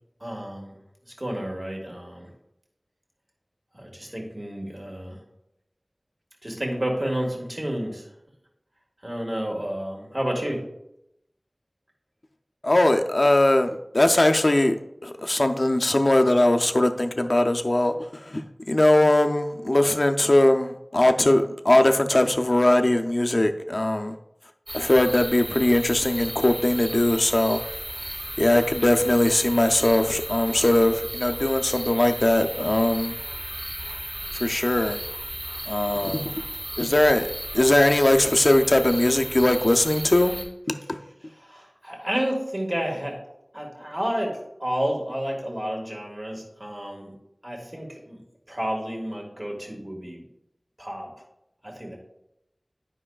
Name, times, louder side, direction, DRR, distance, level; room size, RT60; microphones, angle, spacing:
voice 1, 0.2-0.7 1.2-2.3 3.8-5.2 6.4-8.0 9.0-10.6 41.5-43.2 43.5-47.1 47.4-48.2 48.5-50.2 50.8-51.1 51.6-52.0, equal, 35° right, -1 dB, 1.6 m, -30 dB
voice 2, 12.6-14.8 15.0-24.2 24.7-27.6 28.4-33.2 34.3-35.0 35.7-36.4 36.8-37.3 37.5-40.4 40.7-41.0, left 1 dB, 55° left, 6 dB, 0.5 m, -20 dB
sound 1, 24.7-40.4, right 1 dB, 70° right, 2.4 m, -35 dB
9.8 x 5.2 x 2.3 m, 0.84 s
wide cardioid pair, 40°, 0 cm